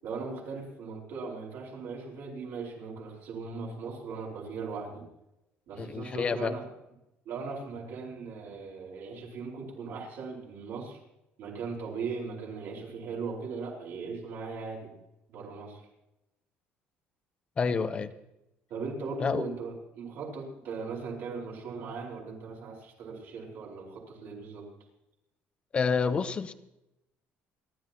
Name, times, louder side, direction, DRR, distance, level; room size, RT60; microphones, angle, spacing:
voice 1, 0.0-5.1 5.7-6.7 7.2-11.0 11.4-14.9 15.3-15.9 18.7-24.7, right 4 dB, 60° right, -1 dB, 4.8 m, -38 dB
voice 2, 5.8-6.6 17.6-18.1 19.2-19.4 25.7-26.5, left 5 dB, 25° left, 12 dB, 0.8 m, -28 dB
28.5 x 12.0 x 3.0 m, 0.91 s
cardioid pair, 155°, 4 cm